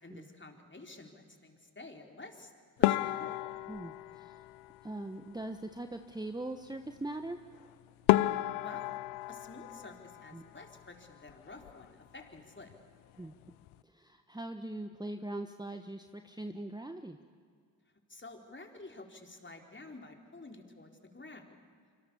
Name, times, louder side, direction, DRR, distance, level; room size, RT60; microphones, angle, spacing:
voice 1, 0.0-2.5 2.8-3.4 8.6-8.9 9.3-12.7 18.1-21.5, left 2 dB, 25° left, 3 dB, 4.1 m, -50 dB
sound 1, 2.8-5.3 7.5-7.6 8.1-10.8 11.1-11.9 12.2-12.4 12.7-12.8 13.4-13.7, left 17 dB, 75° left, 0.7 m, -32 dB
voice 2, 3.7-4.5 4.8-7.4 10.3-10.4 13.2-13.3 13.8-17.2, right 1 dB, 10° right, 7 dB, 1.3 m, -41 dB
25.0 x 25.0 x 7.1 m, 2.1 s
hypercardioid pair, 45°, 48 cm